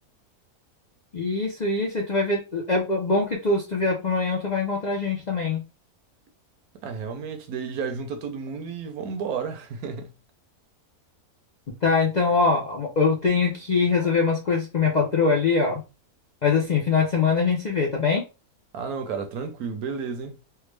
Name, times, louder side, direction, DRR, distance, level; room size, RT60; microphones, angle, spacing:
voice 1, 1.1-5.6 11.8-15.8 16.4-18.2, left 4 dB, 60° left, 0.4 m, -23 dB
voice 2, 6.8-10.1 18.7-20.4, right 5 dB, 75° right, 1.1 m, -32 dB
3.4 x 2.1 x 3.2 m
omnidirectional pair, 1.6 m